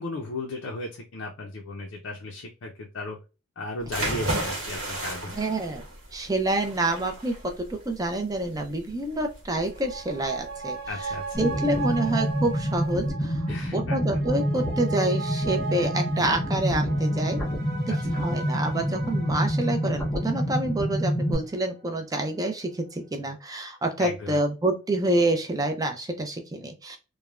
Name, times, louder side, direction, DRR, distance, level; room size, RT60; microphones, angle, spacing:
voice 1, 0.0-3.2 3.6-5.3 10.9-11.4 13.5-14.0 17.9-18.0 24.0-24.4, left 2 dB, 65° left, 0 dB, 0.5 m, -35 dB
sound 1, 3.8-13.1, right 1 dB, 75° right, 1.1 m, -35 dB
voice 2, 5.3-5.8 6.1-7.3 7.7-10.8 11.4-13.4 13.7-17.4 17.9-27.0, right 1 dB, 15° right, 4 dB, 0.4 m, -27 dB
sound 2, 9.6-22.4 22.8-22.9, right 4 dB, 50° right, 0.7 m, -38 dB
sound 3, 11.3-21.3, equal, 10° left, 0.8 m, -27 dB
3.1 x 2.2 x 2.3 m, 0.31 s
head